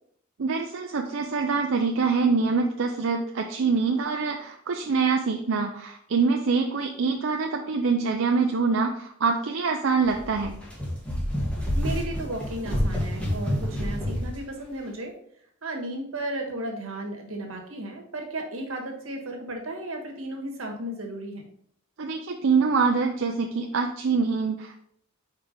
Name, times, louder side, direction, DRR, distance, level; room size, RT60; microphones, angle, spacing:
voice 1, 0.4-10.5 22.0-24.8, right 4 dB, 70° right, 2 dB, 0.5 m, -25 dB
sound 1, 10.0-14.4, equal, 5° left, 1.6 m, -28 dB
voice 2, 11.7-15.1 15.6-21.4, right 1 dB, 90° right, 2 dB, 1.5 m, -34 dB
4.8 x 4.5 x 5.2 m, 0.66 s
head